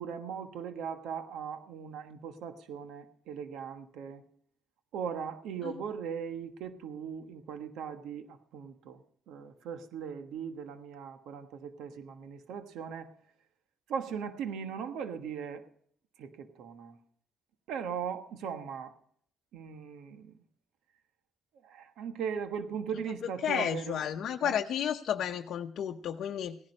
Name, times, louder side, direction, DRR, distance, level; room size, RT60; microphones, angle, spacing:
voice 1, 0.0-4.2 4.9-13.1 13.9-15.7 16.2-17.0 17.7-19.0 19.5-20.4 21.6-24.6, right 7 dB, 85° right, 1.3 m, -39 dB
voice 2, 23.4-26.6, left 9 dB, 70° left, 0.7 m, -32 dB
17.0 x 11.0 x 5.4 m
cardioid pair, 90°, 0 cm